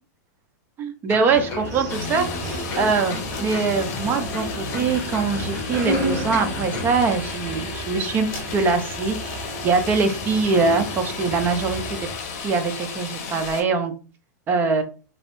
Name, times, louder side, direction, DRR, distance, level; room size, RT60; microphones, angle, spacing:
voice 1, 0.8-2.3 2.8-12.1 12.3-13.9 14.5-14.8, right 4 dB, 20° right, 7 dB, 0.5 m, -23 dB
sound 1, 1.1-7.4 7.7-7.8, left 2 dB, 25° left, 1.6 m, -34 dB
sound 2, 1.3-12.1, right 2 dB, 45° right, 1.3 m, -33 dB
sound 3, 1.9-13.6, left 5 dB, 50° left, 1.0 m, -34 dB
3.1 x 3.0 x 3.0 m, 0.35 s
supercardioid pair, 160°, 10 cm